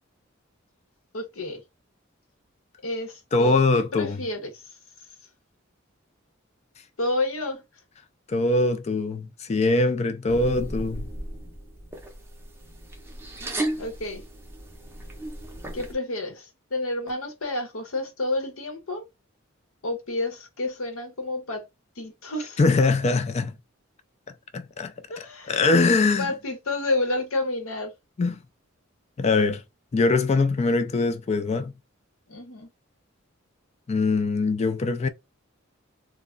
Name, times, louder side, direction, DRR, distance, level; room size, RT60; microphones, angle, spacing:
voice 1, 1.1-1.6 2.8-4.5 7.0-7.6 13.8-14.2 15.7-19.1 19.8-21.6 22.0-22.6 25.1-25.6 26.2-27.9 32.3-32.7, left 2 dB, 90° left, 0.9 m, -30 dB
voice 2, 3.3-4.2 8.3-11.1 22.6-23.5 24.5-26.3 28.2-28.4 29.2-29.6 29.9-31.7 33.9-35.1, left 3 dB, 30° left, 0.3 m, -22 dB
sound 1, 10.3-15.9, right 1 dB, 10° right, 0.6 m, -35 dB
2.2 x 2.1 x 3.7 m
head